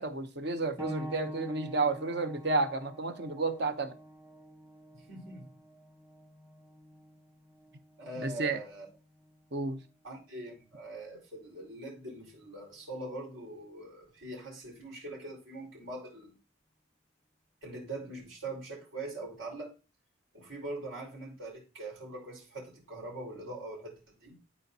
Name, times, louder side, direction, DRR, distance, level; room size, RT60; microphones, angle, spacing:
voice 1, 0.0-3.9 8.2-8.6 9.5-9.8, right 3 dB, 55° right, 0.9 m, -31 dB
sound 1, 0.8-11.0 12.0-12.1 12.8-12.9, equal, 10° right, 1.1 m, -47 dB
voice 2, 4.9-5.5 8.0-8.9 10.0-16.4 17.6-19.7 20.3-24.4, right 2 dB, 75° right, 4.5 m, -42 dB
13.5 x 4.5 x 2.8 m
head